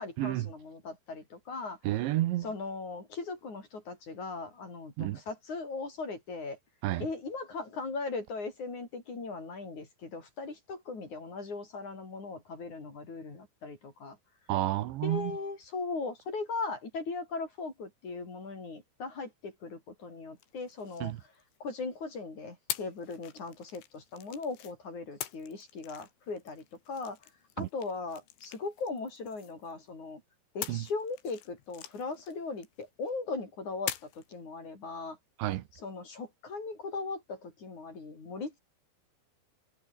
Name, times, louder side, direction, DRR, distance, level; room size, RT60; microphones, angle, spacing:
voice 1, 0.0-1.8 2.4-6.6 7.0-14.2 15.0-21.1 21.6-27.2 27.6-30.2 30.5-35.2 35.7-38.6, left 3 dB, 40° left, 6.9 m, -39 dB
voice 2, 1.8-2.5 5.0-5.2 6.8-7.1 14.5-15.3 21.0-21.2 27.6-27.7 30.7-30.8 35.4-35.6, right 15 dB, 75° right, 3.4 m, -30 dB
sound 1, 20.4-21.8 22.7-24.7 25.2-29.9 30.6-33.1 33.9-34.3, left 12 dB, 80° left, 4.3 m, -44 dB
omnidirectional pair, 5.4 m